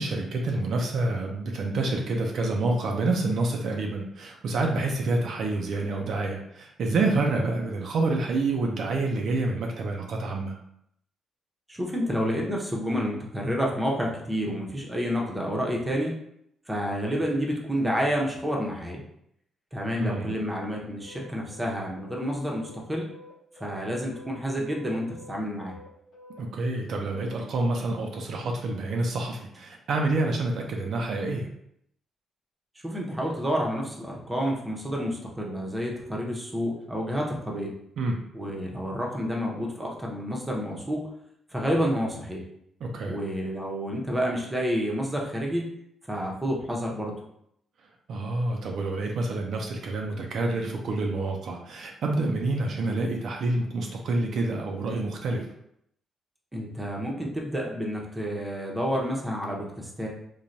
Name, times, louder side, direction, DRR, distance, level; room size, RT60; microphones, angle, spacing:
voice 1, 0.0-10.5 20.0-20.4 26.4-31.5 38.0-38.2 42.8-43.2 48.1-55.5, right 2 dB, 65° right, 1 dB, 0.4 m, -28 dB
voice 2, 11.7-16.1 16.7-19.0 19.7-23.1 23.6-25.8 32.8-37.7 38.3-41.0 41.5-42.4 43.1-45.7 46.1-47.2 56.5-60.1, equal, 15° right, -1 dB, 0.7 m, -29 dB
sound 1, 20.5-26.7, left 2 dB, 80° left, 0.8 m, -49 dB
3.1 x 2.2 x 2.6 m, 0.73 s
cardioid pair, 100°, 0 cm